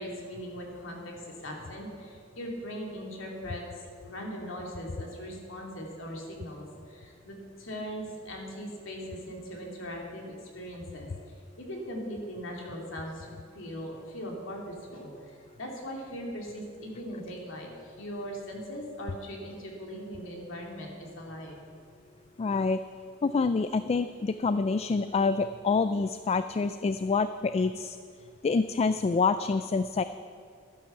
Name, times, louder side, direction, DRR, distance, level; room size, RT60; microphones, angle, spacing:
voice 1, 0.0-21.6, equal, 70° left, 0 dB, 2.9 m, -40 dB
voice 2, 22.4-22.8 23.2-28.0 28.4-30.0, left 4 dB, 30° left, 12 dB, 0.3 m, -27 dB
12.0 x 10.5 x 7.0 m, 2.3 s
head